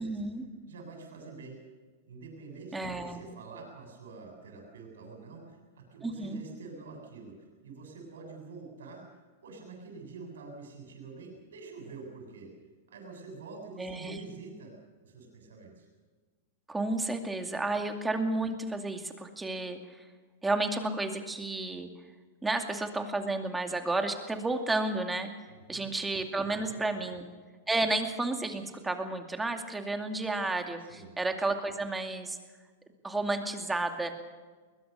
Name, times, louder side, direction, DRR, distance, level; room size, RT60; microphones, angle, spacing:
voice 1, 0.0-0.5 2.7-3.2 6.0-6.4 13.8-14.2 16.7-20.1 20.4-21.9 22.4-25.3 25.7-27.3 27.7-32.4 33.0-34.1, right 2 dB, 10° right, 5 dB, 2.4 m, -32 dB
voice 2, 0.7-1.6 2.1-9.1 9.4-12.5 12.9-14.7 15.0-15.9 25.5-25.9 26.5-27.0 30.8-31.1, right 4 dB, 85° right, 2 dB, 7.3 m, -47 dB
21.5 x 20.5 x 6.8 m, 1.4 s
hypercardioid pair, 135°, 0 cm